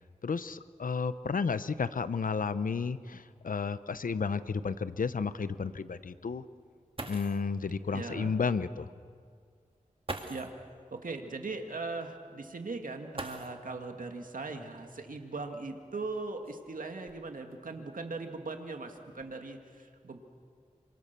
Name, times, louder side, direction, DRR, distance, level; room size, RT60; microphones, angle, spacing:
voice 1, 0.2-6.4 7.1-8.9, left 5 dB, 85° left, 13 dB, 0.8 m, -32 dB
sound 1, 6.6-6.7 7.0-7.5 8.8-8.9 10.0-10.6 13.1-13.9 15.2-15.3 16.1-17.5 18.2-18.6 18.9-19.3, right 2 dB, 40° right, 2.1 m, -43 dB
voice 2, 7.9-8.4 10.3-20.2, right 3 dB, 80° right, 4 dB, 2.0 m, -39 dB
27.5 x 25.0 x 6.8 m, 2.1 s
wide cardioid pair, 60°, 14 cm